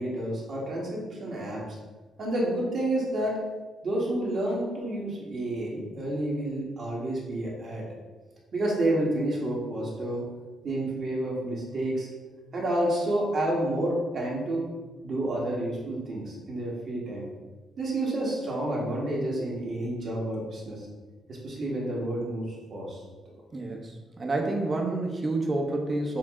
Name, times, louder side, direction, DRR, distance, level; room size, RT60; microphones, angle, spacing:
voice 1, 0.0-1.8 2.2-3.4 3.8-7.8 8.5-10.2 10.6-12.1 12.5-14.6 15.0-17.3 17.8-20.9 21.3-23.0, right 1 dB, 50° right, -4 dB, 1.4 m, -29 dB
voice 2, 23.5-26.2, right 2 dB, 30° right, 1 dB, 0.8 m, -29 dB
5.7 x 2.1 x 3.6 m, 1.3 s
cardioid pair, 90°, 0 cm